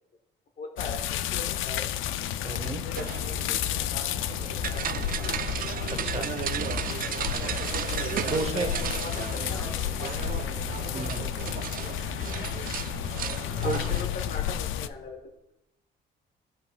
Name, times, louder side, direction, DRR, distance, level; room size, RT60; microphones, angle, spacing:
voice 1, 0.6-1.9 2.4-4.1 4.4-5.5 8.3-10.2 10.7-10.9 13.6-15.3, left 3 dB, 50° left, 2 dB, 1.2 m, -40 dB
sound 1, 0.8-14.9, left 11 dB, 80° left, 0.4 m, -31 dB
voice 2, 2.4-2.8 5.9-6.3 8.3-8.7 10.9-11.3 13.6-13.9, right 4 dB, 30° right, 7 dB, 1.1 m, -32 dB
sound 2, 3.0-14.1, right 9 dB, 45° right, 0.4 m, -35 dB
Singing / Plucked string instrument, 5.8-10.7, equal, 10° left, 2.4 m, -51 dB
15.0 x 5.3 x 2.4 m, 0.90 s
cardioid pair, 90°, 20 cm